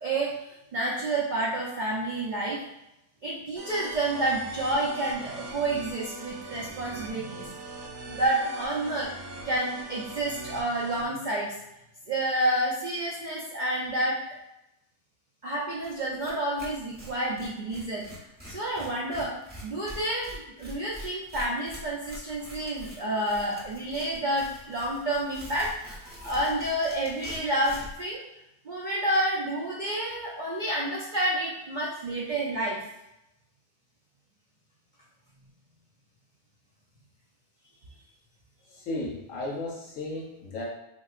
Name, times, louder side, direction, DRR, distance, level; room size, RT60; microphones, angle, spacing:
voice 1, 0.0-2.6 3.2-7.6 8.1-9.1 9.4-11.6 12.1-14.2 15.4-18.0 18.4-28.2 28.6-32.9, right 1 dB, 85° right, -5 dB, 0.4 m, -29 dB
sound 1, 3.6-11.0, right 2 dB, 65° right, 0.9 m, -41 dB
Tearing, 15.8-15.9 16.2-16.3 16.6-28.0, equal, 10° right, 0.5 m, -45 dB
voice 2, 38.7-40.7, left 2 dB, 65° left, -2 dB, 1.1 m, -34 dB
3.5 x 2.8 x 2.4 m, 0.89 s
omnidirectional pair, 1.6 m